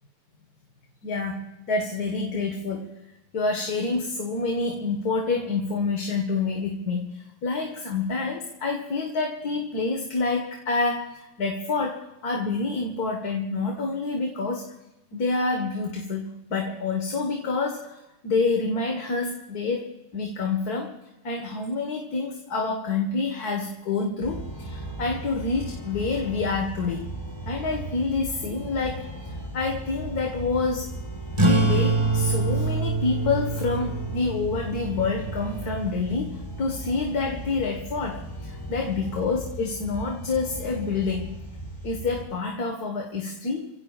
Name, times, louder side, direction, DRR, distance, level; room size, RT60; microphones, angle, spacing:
voice 1, 1.0-2.9 3.3-14.8 15.1-21.0 21.2-27.1 27.5-30.9 31.4-41.4 41.8-43.7, left 4 dB, 65° left, 2 dB, 2.1 m, -28 dB
sound 1, 24.2-42.3, right 1 dB, 15° left, 4.4 m, -37 dB
sound 2, 31.3-36.4, right 3 dB, 20° right, 1.1 m, -26 dB
28.0 x 16.5 x 2.5 m, 0.96 s
omnidirectional pair, 1.8 m